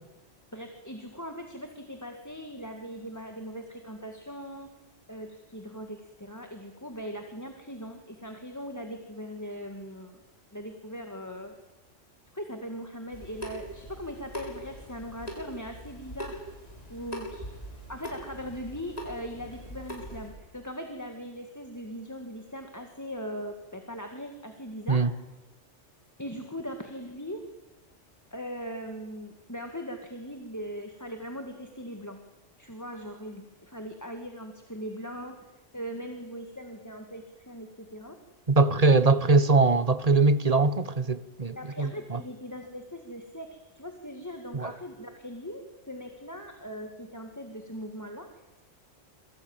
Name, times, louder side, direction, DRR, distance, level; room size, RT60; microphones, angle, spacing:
voice 1, 0.5-4.7 5.1-10.2 10.5-11.5 12.3-16.4 16.9-17.6 17.9-25.1 26.2-27.5 28.3-32.2 32.6-35.4 35.7-38.2 39.1-39.3 41.6-48.4, equal, 15° left, 2.0 m, -40 dB
Water tap faucet / Sink (filling or washing) / Drip, 13.1-20.3, equal, 30° left, 7.3 m, -42 dB
voice 2, 38.5-42.2 44.5-44.7, right 3 dB, 35° right, 1.2 m, -22 dB
28.5 x 22.5 x 8.9 m
omnidirectional pair, 1.3 m